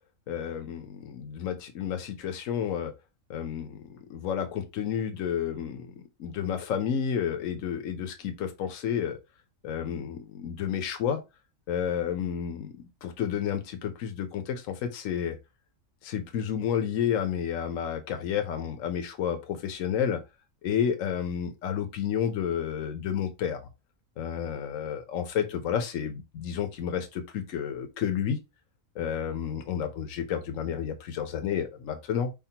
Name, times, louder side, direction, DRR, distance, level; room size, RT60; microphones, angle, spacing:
voice 1, 0.3-2.9 3.3-5.9 6.2-9.2 9.6-11.2 11.7-15.4 16.0-20.2 20.6-23.6 24.2-28.4 29.0-32.3, left 8 dB, 75° left, 1.2 m, -31 dB
4.9 x 3.7 x 2.8 m
omnidirectional pair, 1.4 m